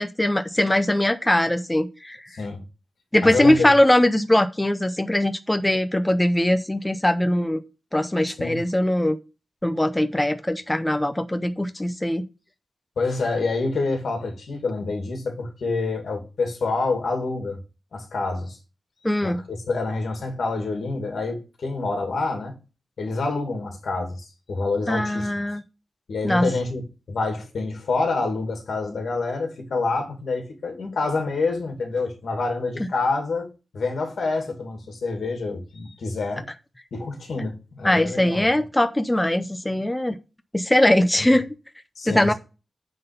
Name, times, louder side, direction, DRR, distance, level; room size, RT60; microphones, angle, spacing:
voice 1, 0.0-2.3 3.1-7.6 7.9-9.2 9.6-12.2 19.0-19.4 24.9-25.6 26.2-26.5 32.8-32.9 37.8-40.2 40.5-41.5 42.1-42.3, left 1 dB, 10° left, 0.6 m, -21 dB
voice 2, 2.3-2.6 3.2-3.7 8.4-8.6 13.0-17.6 17.9-18.6 19.2-22.6 23.0-25.3 26.1-26.8 27.1-36.5 36.9-38.5 41.2-41.3 42.0-42.3, left 3 dB, 85° left, 2.3 m, -27 dB
9.5 x 3.9 x 6.7 m
wide cardioid pair, 170°, 0 cm